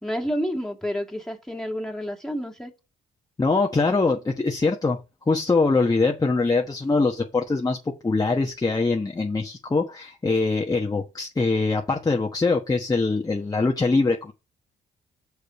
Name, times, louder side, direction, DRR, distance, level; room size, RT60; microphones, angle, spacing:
voice 1, 0.0-2.7, equal, 5° left, 2.1 m, -29 dB
voice 2, 3.4-5.0 5.3-14.3, left 3 dB, 20° left, 1.2 m, -23 dB
6.6 x 5.1 x 5.2 m
cardioid pair, 90°, 20 cm